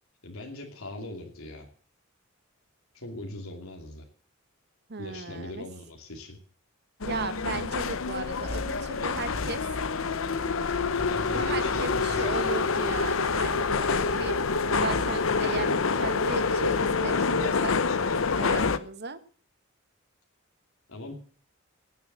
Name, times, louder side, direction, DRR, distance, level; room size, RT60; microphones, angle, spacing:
voice 1, 0.2-1.7 2.9-4.0 5.0-6.4 10.9-12.3 20.9-21.1, left 2 dB, 85° left, 2 dB, 2.7 m, -40 dB
voice 2, 4.9-5.6 7.0-9.6 11.3-14.4 14.8-17.8 18.3-19.2, right 4 dB, 50° right, 12 dB, 1.2 m, -36 dB
sound 1, 7.0-18.8, left 4 dB, 70° left, 0.8 m, -27 dB
18.0 x 7.1 x 7.5 m, 0.43 s
head